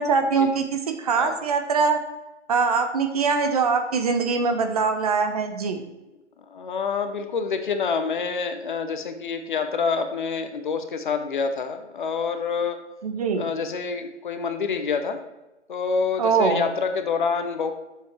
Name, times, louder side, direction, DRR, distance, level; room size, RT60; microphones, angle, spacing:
voice 1, 0.0-2.0 2.5-5.8 13.0-13.5 16.2-16.7, right 5 dB, 30° right, 7 dB, 0.8 m, -23 dB
voice 2, 6.5-12.8 13.3-15.2 15.7-17.7, left 5 dB, 45° left, 7 dB, 1.0 m, -27 dB
9.2 x 7.1 x 4.5 m, 1.0 s
figure-of-eight pair, 145°, 36 cm